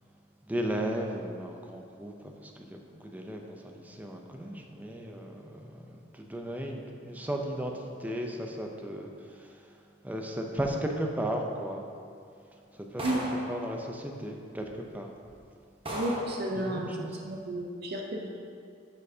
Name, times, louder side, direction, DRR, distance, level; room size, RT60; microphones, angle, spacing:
voice 1, 0.5-9.6 10.0-11.8 12.7-13.1 13.5-14.7 14.9-15.1 16.6-17.2, right 1 dB, 10° right, 1 dB, 0.5 m, -35 dB
sound 1, 13.0-13.6 14.6-14.7 15.2-15.4 15.9-16.4, equal, 25° right, 1.0 m, -35 dB
voice 2, 15.9-16.9 17.2-18.4, right 1 dB, 50° right, 0 dB, 0.6 m, -32 dB
11.0 x 4.4 x 2.7 m, 2.4 s
head